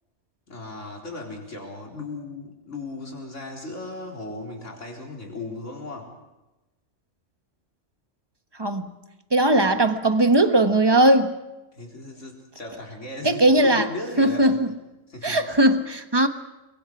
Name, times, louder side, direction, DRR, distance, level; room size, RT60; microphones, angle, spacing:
voice 1, 0.5-6.1 11.7-14.6 15.1-15.6, left 2 dB, 75° left, 4.7 m, -36 dB
voice 2, 8.6-8.9 9.3-11.3 13.2-13.9 14.2-14.7 15.2-16.3, right 1 dB, 20° right, 1.3 m, -19 dB
29.5 x 23.0 x 4.9 m
omnidirectional pair, 1.3 m